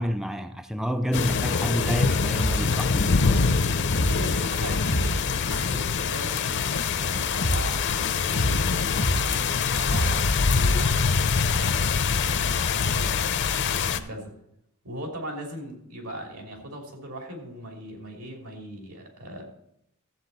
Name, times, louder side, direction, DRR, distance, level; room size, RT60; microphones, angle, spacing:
voice 1, 0.0-3.5, equal, ahead, 0.3 m, -29 dB
sound 1, 1.1-14.0, left 5 dB, 55° left, 0.5 m, -24 dB
sound 2, 2.4-4.6 4.9-5.7 6.0-9.6 9.9-10.9 11.2-11.3 11.5-12.2, equal, 90° left, 1.6 m, -29 dB
voice 2, 4.0-14.3 14.8-19.4, right 1 dB, 85° right, 2.7 m, -39 dB
13.0 x 7.8 x 4.0 m
head